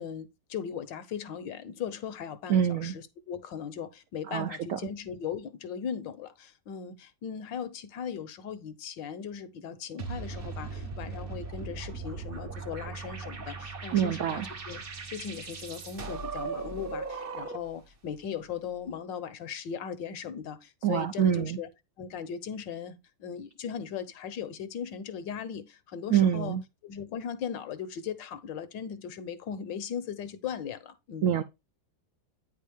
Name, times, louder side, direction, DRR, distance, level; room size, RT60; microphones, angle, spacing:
voice 1, 0.0-14.8 15.1-21.7 22.0-26.6 26.8-31.3, left 7 dB, 70° left, 1.5 m, -38 dB
voice 2, 2.5-2.9 4.3-4.8 13.9-14.5 20.8-21.6 26.1-26.6 31.2-31.4, right 9 dB, 75° right, 0.7 m, -26 dB
sound 1, 10.0-17.8, right 4 dB, 40° right, 0.9 m, -38 dB
9.2 x 4.6 x 3.4 m
omnidirectional pair, 2.1 m